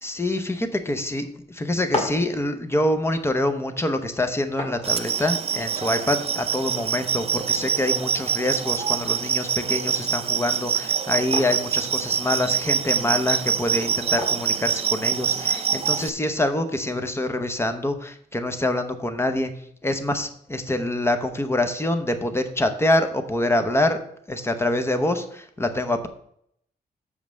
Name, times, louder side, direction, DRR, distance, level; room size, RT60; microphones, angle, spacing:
voice 1, 0.0-19.5 19.8-24.0 24.3-26.1, left 1 dB, 15° left, 7 dB, 0.8 m, -25 dB
sound 1, 1.6-15.5, left 2 dB, 40° left, 1.8 m, -39 dB
sound 2, 4.8-16.1, right 7 dB, 40° right, 0.4 m, -25 dB
6.6 x 5.3 x 6.2 m, 0.68 s
wide cardioid pair, 135°, 16 cm